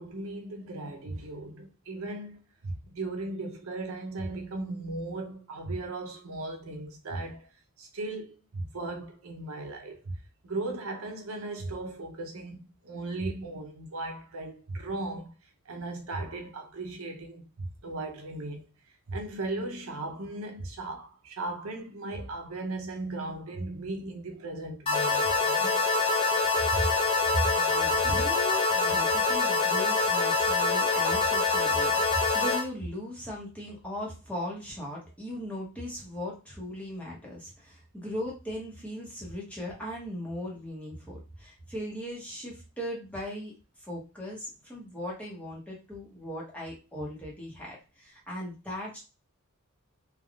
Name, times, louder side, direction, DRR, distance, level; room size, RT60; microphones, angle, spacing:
voice 1, 0.0-7.5 7.8-10.1 10.4-15.3 15.7-18.6 19.1-25.8 26.7-26.8 28.0-28.2 37.3-37.4, right 2 dB, 75° right, 0.6 m, -37 dB
sound 1, 24.9-32.6, left 3 dB, 25° left, 0.6 m, -25 dB
voice 2, 27.3-43.5 43.8-49.0, equal, 5° left, 0.9 m, -37 dB
3.4 x 2.3 x 2.3 m
head